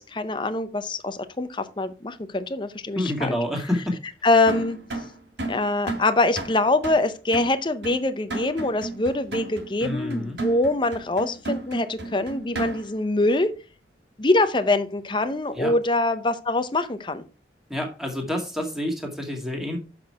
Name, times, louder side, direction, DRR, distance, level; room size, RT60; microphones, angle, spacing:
voice 1, 0.1-3.4 4.2-4.8 5.5-13.5 14.2-17.2, left 2 dB, 25° left, 10 dB, 0.7 m, -24 dB
voice 2, 3.0-4.0 9.8-10.4 15.5-15.7 17.7-19.8, left 1 dB, ahead, 1 dB, 2.1 m, -28 dB
sound 1, 4.5-13.1, right 2 dB, 85° right, 3.0 m, -34 dB
7.4 x 6.1 x 4.7 m, 0.32 s
head